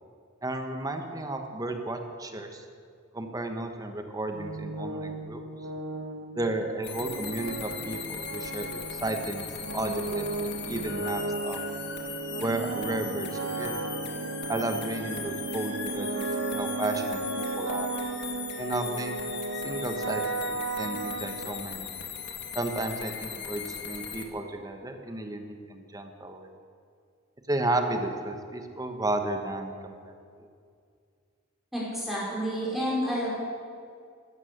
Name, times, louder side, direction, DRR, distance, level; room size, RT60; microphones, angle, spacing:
voice 1, 0.4-2.6 3.1-5.4 6.3-9.5 9.7-11.6 12.4-13.3 13.6-13.8 14.5-18.0 18.6-19.1 19.6-21.9 22.5-26.5 27.5-30.1, right 2 dB, 20° right, 5 dB, 1.3 m, -33 dB
sound 1, 4.3-22.0, right 3 dB, 65° right, 1.3 m, -35 dB
sound 2, 6.8-24.2, left 7 dB, 55° left, 1.7 m, -39 dB
voice 2, 31.7-33.3, equal, ahead, -7 dB, 4.6 m, -29 dB
15.0 x 13.0 x 6.7 m, 2.2 s
head